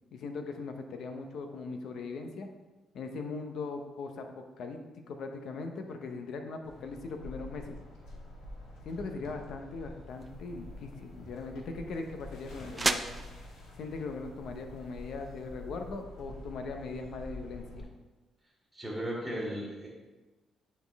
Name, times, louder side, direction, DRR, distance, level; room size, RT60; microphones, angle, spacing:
voice 1, 0.1-2.5 2.9-7.8 8.8-13.2 13.8-17.9, left 3 dB, 70° left, 5 dB, 0.8 m, -40 dB
sound 1, 6.6-17.8, left 1 dB, 85° left, 1.3 m, -47 dB
sound 2, 10.1-16.0, right 3 dB, 25° right, 0.4 m, -39 dB
voice 2, 18.7-19.9, equal, ahead, -4 dB, 2.2 m, -36 dB
9.3 x 4.2 x 3.5 m, 1.2 s
cardioid pair, 90°, 0 cm